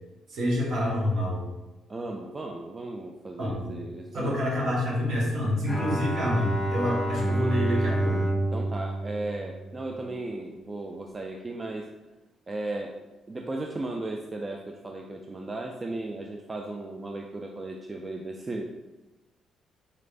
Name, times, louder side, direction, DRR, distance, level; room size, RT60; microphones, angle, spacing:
voice 1, 0.3-1.5 3.4-3.9 4.1-8.3, left 1 dB, 60° right, -4 dB, 1.3 m, -27 dB
voice 2, 1.9-4.4 8.5-11.9 12.5-18.7, right 2 dB, 25° right, 1 dB, 0.3 m, -36 dB
Bowed string instrument, 5.7-10.1, right 1 dB, 10° left, 0.7 m, -28 dB
4.0 x 3.2 x 2.5 m, 1.1 s
cardioid pair, 90°, 0 cm